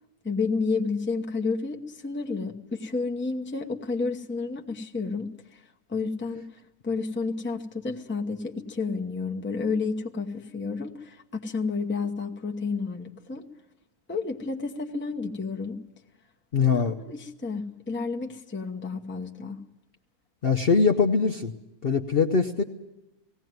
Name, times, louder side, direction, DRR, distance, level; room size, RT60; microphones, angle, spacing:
voice 1, 0.2-5.6 5.9-6.5 6.8-13.4 14.1-15.8 16.7-19.6, left 4 dB, 10° left, 2 dB, 0.8 m, -31 dB
voice 2, 16.5-16.9 20.4-21.5 21.8-22.6, left 5 dB, 45° left, 3 dB, 0.9 m, -22 dB
18.5 x 16.5 x 9.3 m, 0.98 s
omnidirectional pair, 1.6 m